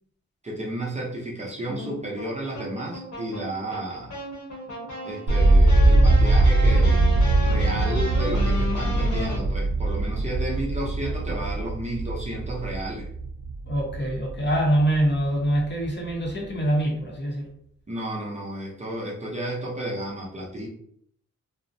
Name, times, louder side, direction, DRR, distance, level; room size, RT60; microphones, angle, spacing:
voice 1, 0.4-4.1 5.0-7.0 7.4-13.1 17.9-20.7, right 1 dB, 25° right, -4 dB, 0.6 m, -32 dB
sound 1, 1.7-9.4, equal, 80° left, 1.0 m, -34 dB
sound 2, 5.3-15.3 15.5-16.3, right 2 dB, 70° right, 0.6 m, -21 dB
Bass guitar, 6.8-10.9, equal, 20° left, 0.9 m, -40 dB
voice 2, 13.7-17.5, right 1 dB, 40° left, -1 dB, 0.7 m, -24 dB
2.5 x 2.0 x 2.6 m, 0.66 s
wide cardioid pair, 105°, 29 cm